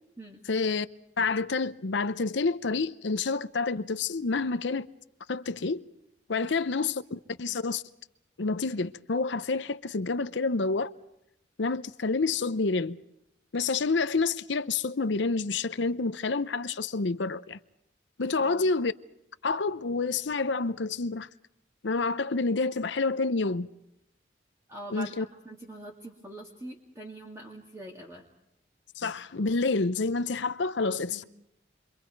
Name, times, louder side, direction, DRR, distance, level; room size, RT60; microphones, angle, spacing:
voice 1, 0.5-0.9 1.2-4.9 5.3-5.8 6.3-7.8 8.4-10.9 11.6-13.0 13.5-17.6 18.2-18.9 19.4-21.3 21.8-23.7 24.9-25.3 29.0-31.2, left 3 dB, 75° left, 0.7 m, -28 dB
voice 2, 18.4-18.7 24.7-25.1 25.4-28.2 31.1-31.2, right 1 dB, 15° right, 2.4 m, -43 dB
29.5 x 24.0 x 4.7 m
head